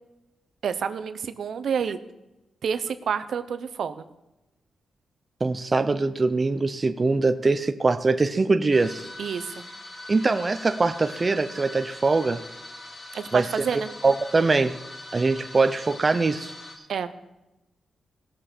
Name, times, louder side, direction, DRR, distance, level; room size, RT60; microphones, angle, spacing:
voice 1, 0.6-2.0 2.6-4.0 9.2-9.6 13.1-13.9 16.9-17.1, right 7 dB, 70° right, 11 dB, 0.8 m, -29 dB
voice 2, 5.4-9.1 10.1-12.4 13.3-13.4 14.0-14.8 15.1-16.5, right 3 dB, 30° right, 9 dB, 0.6 m, -22 dB
sound 1, 8.7-16.8, left 1 dB, 40° left, 2.5 m, -42 dB
19.0 x 6.9 x 4.4 m, 0.97 s
cardioid pair, 105°, 0 cm